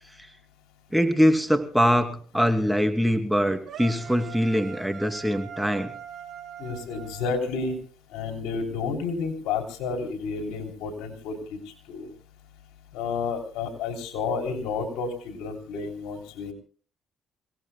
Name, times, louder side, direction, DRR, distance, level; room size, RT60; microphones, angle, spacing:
voice 1, 0.9-5.9, equal, ahead, 6 dB, 2.6 m, -23 dB
sound 1, 3.7-7.8, right 8 dB, 60° right, 5.0 m, -42 dB
voice 2, 6.6-7.7 8.1-11.6 11.9-12.1 12.9-16.5, left 4 dB, 90° left, 3 dB, 3.4 m, -31 dB
29.0 x 18.0 x 2.2 m, 0.41 s
supercardioid pair, 70°, 0 cm